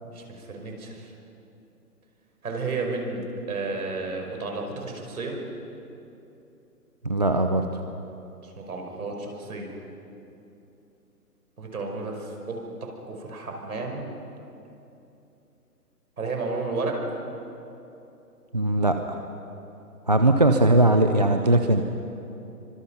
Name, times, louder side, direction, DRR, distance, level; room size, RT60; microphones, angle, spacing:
voice 1, 0.0-1.1 2.4-5.4 8.6-9.8 11.6-14.1 16.2-17.2, right 3 dB, 65° right, 2 dB, 5.5 m, -32 dB
voice 2, 7.0-7.7 18.5-19.2 20.1-21.9, right 2 dB, 25° right, 6 dB, 0.5 m, -20 dB
25.0 x 25.0 x 5.9 m, 2.9 s
hypercardioid pair, 160°, 47 cm